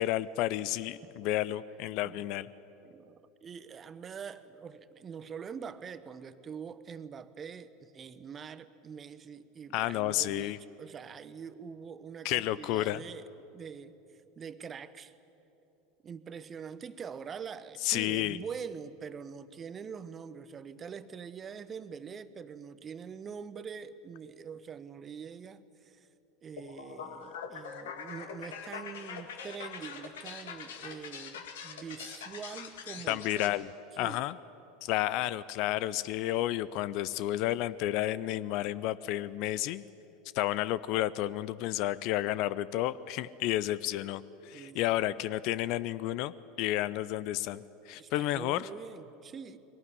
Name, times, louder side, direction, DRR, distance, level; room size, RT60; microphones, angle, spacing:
voice 1, 0.0-2.5 9.7-10.6 12.2-13.0 17.8-18.4 33.1-33.7 34.0-34.4 34.8-39.8 40.3-48.7, left 14 dB, 50° left, 18 dB, 0.5 m, -31 dB
voice 2, 2.8-13.3 13.5-14.0 14.4-15.1 16.0-26.1 26.4-33.5 34.0-34.3 44.5-44.9 47.9-49.6, right 6 dB, 25° right, 14 dB, 0.9 m, -44 dB
sound 1, 26.6-33.5, left 6 dB, 65° left, 1.8 m, -43 dB
22.0 x 17.5 x 9.8 m, 3.0 s
figure-of-eight pair, 80°, 0 cm